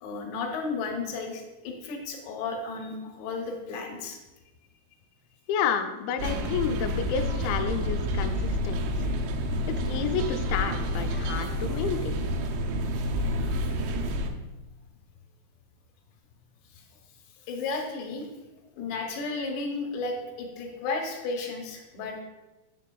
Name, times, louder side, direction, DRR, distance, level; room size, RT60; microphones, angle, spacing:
voice 1, 0.0-4.2 16.8-16.9 17.5-18.3 18.8-22.2, left 3 dB, 75° left, 1 dB, 2.6 m, -33 dB
voice 2, 5.5-9.1 9.9-12.2, left 7 dB, 90° left, 7 dB, 2.9 m, -30 dB
sound 1, 6.2-14.3, equal, 85° right, 2.9 m, -29 dB
8.3 x 6.1 x 2.3 m, 1.1 s
omnidirectional pair, 5.2 m